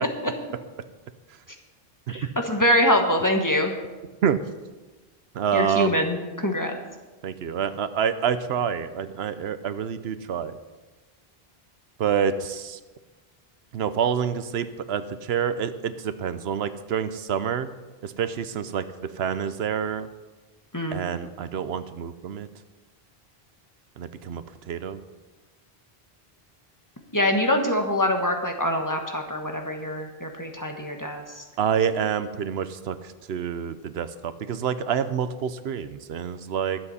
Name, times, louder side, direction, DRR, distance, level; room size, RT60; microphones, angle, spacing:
voice 1, 2.1-3.8 5.5-6.8 20.7-21.0 27.1-31.4, left 1 dB, 20° left, 3 dB, 1.4 m, -24 dB
voice 2, 5.3-6.0 7.2-10.6 12.0-12.8 13.7-17.7 18.0-20.1 20.9-22.5 24.0-25.0 31.6-36.8, right 8 dB, 85° right, 12 dB, 0.9 m, -27 dB
22.0 x 7.9 x 4.2 m, 1.2 s
omnidirectional pair, 1.0 m